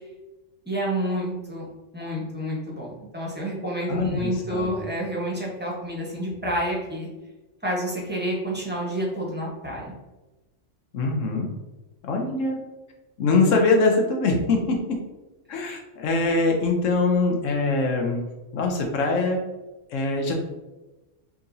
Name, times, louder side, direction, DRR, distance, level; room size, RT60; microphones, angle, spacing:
voice 1, 0.7-1.6 1.9-7.1 7.6-9.9, right 1 dB, 10° right, -4 dB, 0.9 m, -29 dB
voice 2, 3.9-4.7 10.9-11.5 12.0-12.6 13.2-15.0 15.5-18.2 18.5-19.4 19.9-20.4, left 3 dB, 85° left, 2 dB, 1.1 m, -23 dB
4.7 x 3.0 x 2.6 m, 1.1 s
omnidirectional pair, 1.3 m